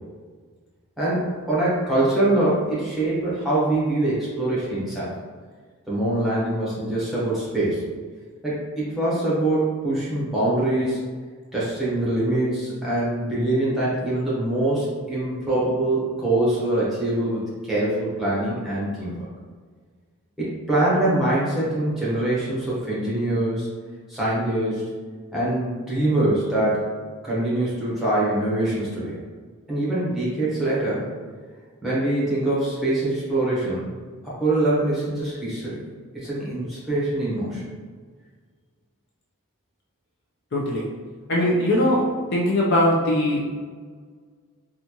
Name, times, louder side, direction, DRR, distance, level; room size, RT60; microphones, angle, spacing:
voice 1, 1.0-5.1 5.9-7.8 8.4-11.0 11.5-19.3 20.4-23.7 24.1-24.8 25.3-26.9 27.2-29.2 29.7-31.1 31.8-33.9 34.2-35.8 36.1-37.6, right 1 dB, ahead, -9 dB, 1.0 m, -24 dB
voice 2, 40.5-40.9 41.3-42.1 42.3-43.4, left 1 dB, 50° left, -4 dB, 0.6 m, -20 dB
4.2 x 2.4 x 2.9 m, 1.6 s
head